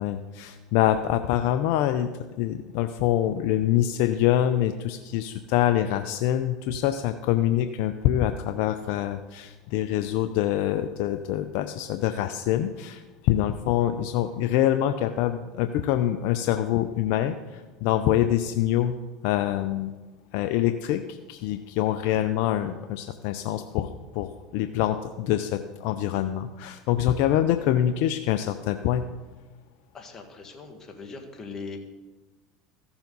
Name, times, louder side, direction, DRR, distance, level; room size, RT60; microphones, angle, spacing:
voice 1, 0.0-2.1 2.4-19.0 19.2-19.9 20.3-29.1, left 12 dB, 65° left, 9 dB, 0.5 m, -25 dB
voice 2, 29.9-31.8, left 4 dB, 25° left, 2 dB, 1.8 m, -40 dB
14.5 x 7.0 x 4.0 m, 1.2 s
supercardioid pair, 100°, 2 cm